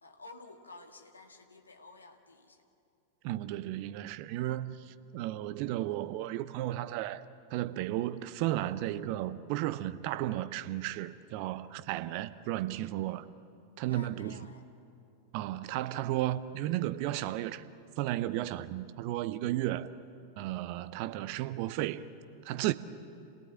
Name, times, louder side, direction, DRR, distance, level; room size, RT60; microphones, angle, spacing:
voice 1, 0.0-2.6 13.9-14.6, left 3 dB, 75° left, 1.9 m, -52 dB
voice 2, 3.2-7.2 7.5-13.2 13.8-14.4 15.3-17.6 18.0-19.9 20.4-22.0 22.4-22.7, right 14 dB, 45° right, 0.8 m, -34 dB
27.5 x 17.5 x 8.8 m
figure-of-eight pair, 90°, 0 cm